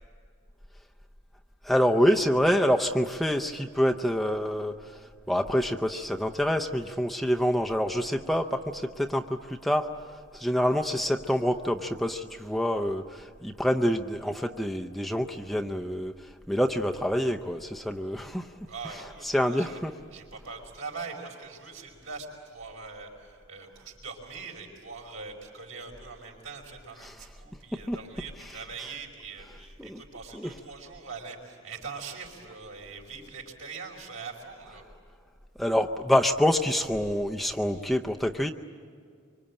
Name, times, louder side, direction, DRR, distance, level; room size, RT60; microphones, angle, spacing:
voice 1, 1.6-5.0 5.3-16.1 16.5-18.5 19.2-19.9 27.0-27.1 27.9-28.0 29.8-30.0 30.3-30.5 35.6-38.5, equal, ahead, 2 dB, 0.6 m, -26 dB
voice 2, 18.7-19.8 20.1-34.8, right 4 dB, 70° right, 1 dB, 5.2 m, -42 dB
25.0 x 25.0 x 8.8 m, 2.2 s
head